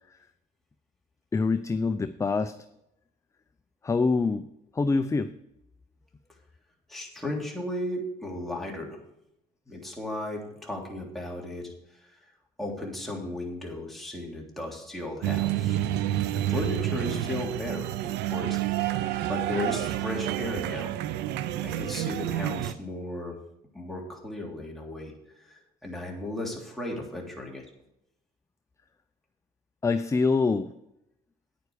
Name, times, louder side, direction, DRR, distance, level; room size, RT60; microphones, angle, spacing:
voice 1, 1.3-2.5 3.8-4.5 4.7-5.3 29.8-30.7, left 4 dB, 15° left, 11 dB, 0.5 m, -25 dB
voice 2, 6.9-9.0 9.7-12.2 12.6-15.9 16.3-19.0 19.3-21.0 21.6-23.3 23.7-27.6, left 1 dB, ahead, -2 dB, 3.4 m, -35 dB
sound 1, 15.2-22.7, right 13 dB, 85° right, 0.7 m, -29 dB
9.6 x 9.5 x 4.8 m, 0.84 s
cardioid pair, 110°, 17 cm